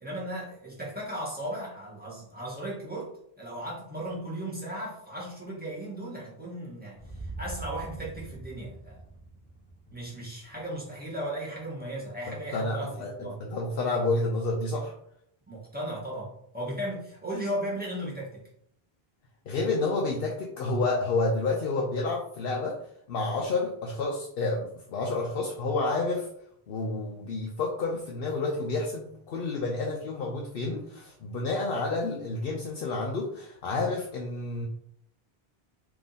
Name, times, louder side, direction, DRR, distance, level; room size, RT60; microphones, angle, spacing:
voice 1, 0.0-3.1 3.4-7.0 7.4-9.0 9.9-12.9 13.2-13.4 15.5-18.4, right 1 dB, 10° right, -6 dB, 1.4 m, -36 dB
sound 1, 6.9-11.0, right 3 dB, 10° left, 0.5 m, -43 dB
voice 2, 12.3-14.9 19.5-22.8 23.1-26.3 26.7-34.7, left 3 dB, 70° left, 0 dB, 0.8 m, -29 dB
3.5 x 2.9 x 4.0 m, 0.70 s
omnidirectional pair, 1.0 m